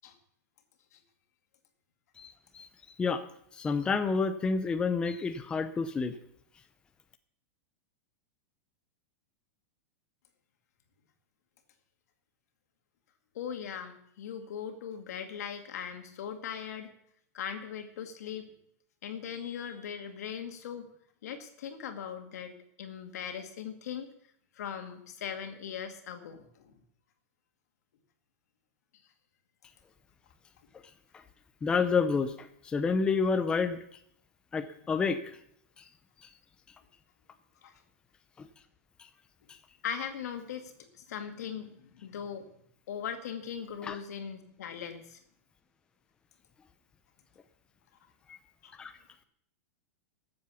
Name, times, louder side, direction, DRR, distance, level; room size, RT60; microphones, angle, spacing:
voice 1, 2.2-2.7 3.0-3.2 3.6-6.1 31.6-33.8 34.5-35.4 38.4-38.5 39.5-39.6 43.8-44.0 48.3-48.4 48.8-48.9, left 5 dB, 10° left, 9 dB, 0.6 m, -29 dB
voice 2, 13.3-16.9 17.3-18.5 19.0-20.9 21.2-24.1 24.5-26.8 37.6-37.8 39.8-42.5 42.9-45.2 48.6-48.7, left 8 dB, 75° left, 6 dB, 2.2 m, -39 dB
13.5 x 7.8 x 7.0 m, 0.70 s
supercardioid pair, 165°, 9 cm